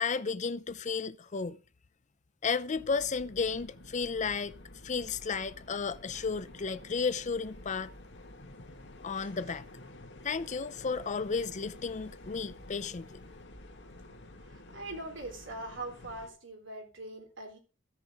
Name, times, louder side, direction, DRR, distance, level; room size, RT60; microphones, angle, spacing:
voice 1, 0.0-1.6 2.4-4.5 4.8-7.9 9.0-9.6 10.2-13.2, left 5 dB, 40° left, 0.6 m, -33 dB
sound 1, 2.7-16.3, left 1 dB, 65° left, 2.0 m, -50 dB
voice 2, 14.4-17.6, right 2 dB, 75° right, 3.6 m, -42 dB
15.0 x 6.6 x 4.9 m
head